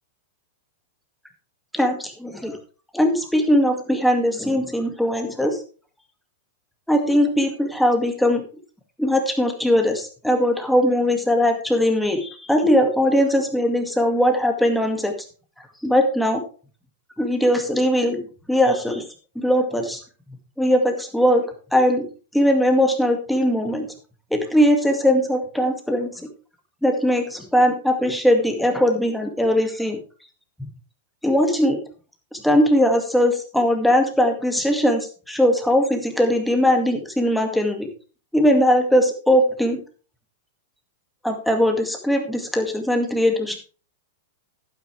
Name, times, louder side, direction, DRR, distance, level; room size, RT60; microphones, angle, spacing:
voice 1, 1.7-2.6 2.9-5.6 6.9-8.4 9.0-15.1 15.8-16.4 17.2-18.2 18.5-19.0 19.4-20.0 20.6-21.5 21.7-22.1 22.3-23.9 24.3-26.3 26.8-30.0 31.2-31.8 32.3-37.9 38.3-39.8 41.2-43.6, equal, ahead, 4 dB, 2.2 m, -20 dB
11.5 x 9.6 x 3.4 m, 0.37 s
hypercardioid pair, 135°, 0 cm